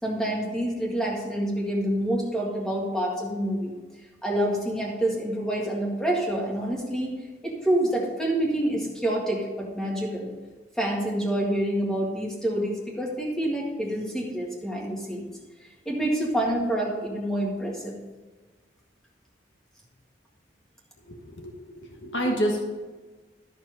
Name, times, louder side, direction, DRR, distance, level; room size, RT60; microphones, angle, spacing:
voice 1, 0.0-3.7 4.2-7.1 7.4-10.3 10.7-15.3 15.8-17.9, right 1 dB, 5° left, -2 dB, 1.8 m, -27 dB
voice 2, 21.1-22.6, equal, 80° left, 1 dB, 1.5 m, -29 dB
13.5 x 4.6 x 5.5 m, 1.3 s
head